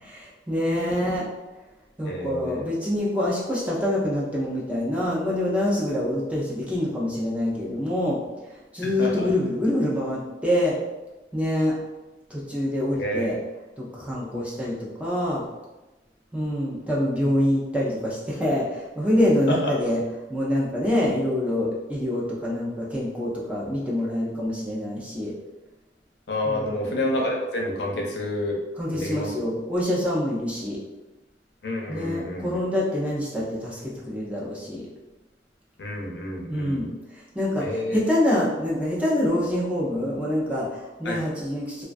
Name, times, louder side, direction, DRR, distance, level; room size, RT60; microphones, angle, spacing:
voice 1, 0.0-1.3 2.0-8.2 8.7-10.8 11.3-11.8 12.3-13.4 13.8-15.4 16.3-20.0 20.3-25.3 26.4-26.9 28.8-30.8 31.9-34.8 36.5-36.9 37.3-41.9, left 1 dB, 10° right, -5 dB, 0.4 m, -26 dB
voice 2, 2.1-2.6 8.8-9.3 13.0-13.3 14.2-14.4 26.3-28.6 28.9-29.3 31.6-32.6 35.8-36.9 37.6-38.0 41.1-41.2, left 1 dB, 80° left, 0 dB, 0.5 m, -29 dB
2.3 x 2.2 x 2.4 m, 1.1 s
head